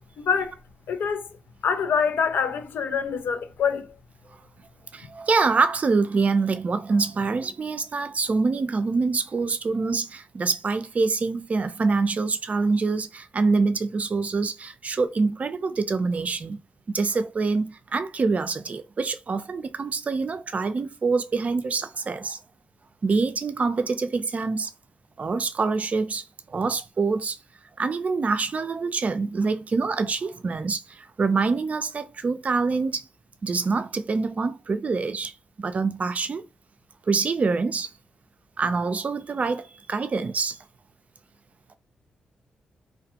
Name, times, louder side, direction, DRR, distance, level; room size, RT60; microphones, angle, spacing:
voice 1, 0.2-0.5 0.9-1.3 1.6-3.9, left 6 dB, 70° left, 0.4 m, -25 dB
voice 2, 4.9-16.6 16.9-22.4 23.0-24.7 25.2-27.4 27.8-33.1 33.4-35.3 35.6-36.4 37.1-37.9 38.6-40.6, right 4 dB, 40° right, 0.4 m, -25 dB
2.3 x 2.2 x 2.8 m
supercardioid pair, 55°, 4 cm